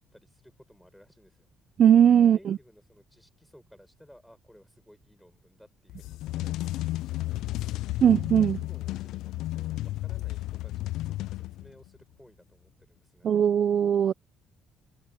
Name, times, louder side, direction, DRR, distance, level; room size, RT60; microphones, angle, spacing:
voice 1, 0.1-1.5 2.2-7.9 8.4-13.3, equal, ahead, 6.7 m, -57 dB
voice 2, 1.8-2.6 8.0-8.6 13.2-14.1, right 9 dB, 40° right, 0.3 m, -19 dB
sound 1, 5.9-11.9, left 16 dB, 90° left, 0.3 m, -33 dB
cardioid pair, 165°, 0 cm